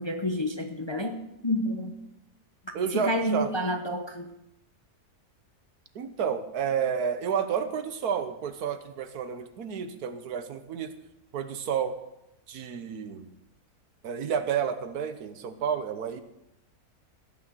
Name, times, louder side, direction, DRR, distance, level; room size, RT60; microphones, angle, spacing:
voice 1, 0.0-1.9 2.7-4.3, left 1 dB, 25° left, 6 dB, 0.6 m, -30 dB
voice 2, 2.7-3.5 5.9-10.9 11.3-12.0 12.5-13.3 14.0-16.2, right 7 dB, 85° right, 10 dB, 1.5 m, -30 dB
16.0 x 6.3 x 7.9 m, 0.88 s
omnidirectional pair, 1.6 m